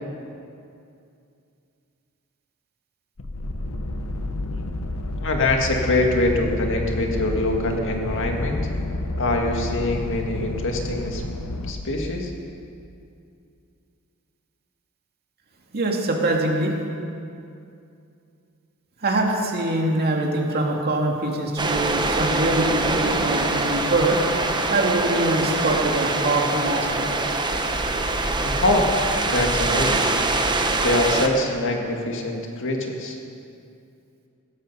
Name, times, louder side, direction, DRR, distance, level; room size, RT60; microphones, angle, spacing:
sound 1, 3.2-11.7, left 1 dB, 75° left, 1.1 m, -29 dB
voice 1, 5.2-8.6 9.2-11.2 11.7-12.3 28.4-29.0 29.2-30.1 30.8-33.2, left 2 dB, 60° left, 2 dB, 1.9 m, -24 dB
voice 2, 15.7-16.7 19.0-24.2 24.7-27.1, right 2 dB, 45° right, 0 dB, 2.2 m, -23 dB
sound 2, 21.6-31.3, right 2 dB, 20° right, 1.0 m, -24 dB
17.0 x 14.0 x 5.6 m, 2.5 s
head